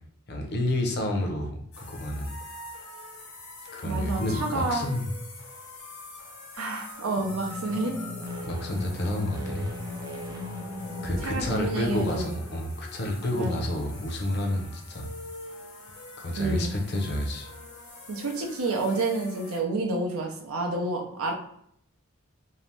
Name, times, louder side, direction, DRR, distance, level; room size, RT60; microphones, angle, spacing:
voice 1, 0.3-2.3 3.7-5.0 8.4-9.7 11.0-15.1 16.2-17.5, left 1 dB, 50° left, 2 dB, 0.6 m, -29 dB
sound 1, 1.7-19.6, left 2 dB, 80° left, 0.8 m, -45 dB
voice 2, 3.8-4.9 6.5-8.0 11.2-12.3 13.3-13.6 16.4-16.7 18.1-21.3, right 2 dB, 80° right, 2 dB, 0.6 m, -29 dB
sound 2, 7.1-12.7, left 1 dB, 15° right, 0.4 m, -38 dB
2.7 x 2.0 x 3.2 m, 0.67 s
head